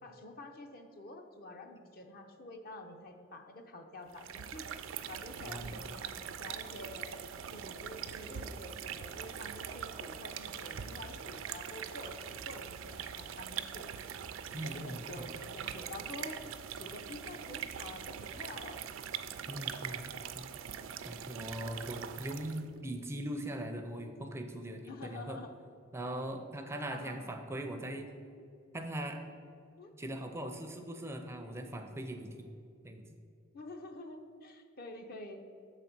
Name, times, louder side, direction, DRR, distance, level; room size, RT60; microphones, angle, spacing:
voice 1, 0.0-4.7 5.1-7.1 7.5-13.9 14.5-16.4 16.8-18.8 24.9-25.5 26.9-27.4 29.8-29.9 33.5-35.4, left 2 dB, 50° left, 5 dB, 0.7 m, -48 dB
sound 1, 4.1-22.7, right 8 dB, 75° right, 0.4 m, -42 dB
voice 2, 5.4-5.9 14.5-15.3 19.5-20.1 20.3-20.4 21.0-25.4 25.9-28.1 28.7-29.2 30.0-32.5 32.8-33.0, right 1 dB, 15° right, 5 dB, 0.4 m, -40 dB
6.7 x 4.1 x 5.8 m, 2.4 s
head